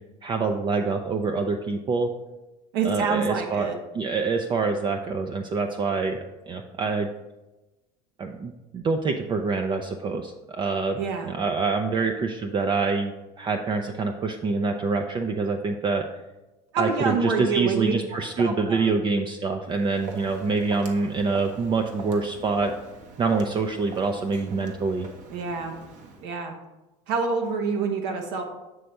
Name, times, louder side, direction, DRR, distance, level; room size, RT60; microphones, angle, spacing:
voice 1, 0.2-2.1 2.8-3.7 3.9-7.1 8.2-16.1 16.8-22.7 23.2-25.1, right 4 dB, 30° right, 5 dB, 0.5 m, -26 dB
voice 2, 2.7-3.8 11.0-11.3 16.7-17.9 18.4-18.9 25.3-25.7 26.2-26.5 27.1-28.4, right 5 dB, 75° right, 3 dB, 1.3 m, -27 dB
Walk footsteps, 19.7-26.3, right 3 dB, 55° right, 1.1 m, -43 dB
7.7 x 3.3 x 5.3 m, 1.1 s
supercardioid pair, 100°, 15 cm